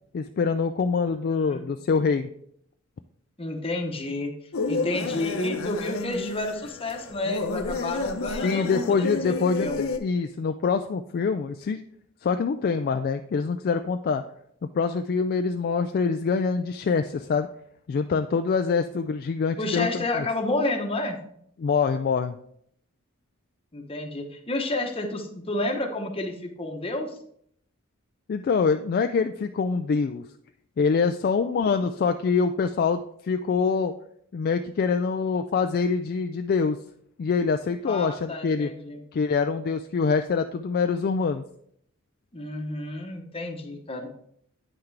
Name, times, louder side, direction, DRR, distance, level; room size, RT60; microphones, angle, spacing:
voice 1, 0.1-2.3 8.4-11.8 12.2-14.2 14.7-17.5 17.9-20.3 21.6-22.4 28.3-30.2 30.8-33.9 34.3-36.8 37.2-38.7 39.1-41.4, left 5 dB, 45° left, 7 dB, 0.3 m, -25 dB
voice 2, 1.3-1.6 3.4-4.3 4.7-9.9 19.6-21.2 23.7-27.1 37.8-39.0 42.3-44.1, left 2 dB, 25° left, 3 dB, 1.0 m, -30 dB
sound 1, 4.5-10.0, left 3 dB, 70° left, 0.7 m, -31 dB
9.0 x 5.8 x 3.3 m, 0.69 s
head